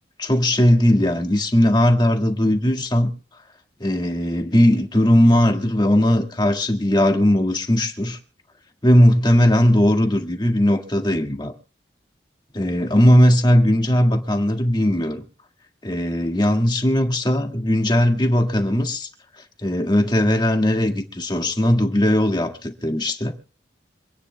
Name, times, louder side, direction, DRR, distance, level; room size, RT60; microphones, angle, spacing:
voice 1, 0.2-3.1 3.8-8.2 8.8-11.5 12.5-15.2 15.8-19.1 19.6-23.3, left 1 dB, 25° left, 1.8 m, -18 dB
27.0 x 9.8 x 2.2 m
head